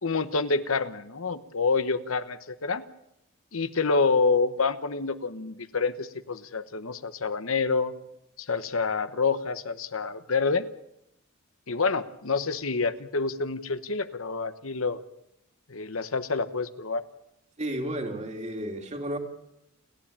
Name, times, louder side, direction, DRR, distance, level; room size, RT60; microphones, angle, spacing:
voice 1, 0.0-2.8 3.5-7.9 8.4-10.6 11.7-15.0 15.7-17.0, left 4 dB, 75° left, 11 dB, 1.1 m, -27 dB
voice 2, 17.6-19.2, right 1 dB, 35° right, 3 dB, 2.9 m, -32 dB
30.0 x 11.5 x 8.8 m, 0.81 s
head